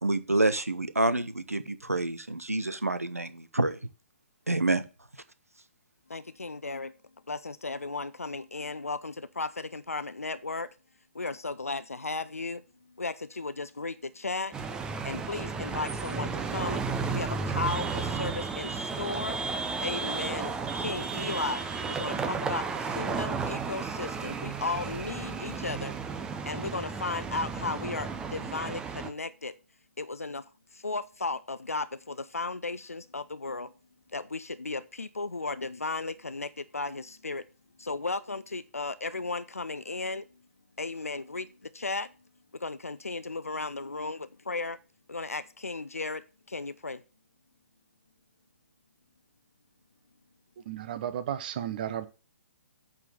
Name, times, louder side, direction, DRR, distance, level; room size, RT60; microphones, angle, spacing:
voice 1, 0.0-3.8 4.5-4.8, right 2 dB, 80° right, 1.0 m, -27 dB
voice 2, 6.1-6.9 7.3-10.7 11.1-12.6 12.9-14.5 15.0-16.8 17.1-19.4 19.8-25.9 26.5-29.6 30.0-33.7 34.1-37.5 37.8-40.3 40.8-42.1 42.5-44.8 45.1-47.0, left 3 dB, 75° left, 0.6 m, -35 dB
sound 1, 14.5-29.1, right 5 dB, 10° right, 0.7 m, -33 dB
voice 3, 50.7-52.1, right 10 dB, 40° right, 1.0 m, -33 dB
8.7 x 4.5 x 6.8 m
figure-of-eight pair, 130°, 8 cm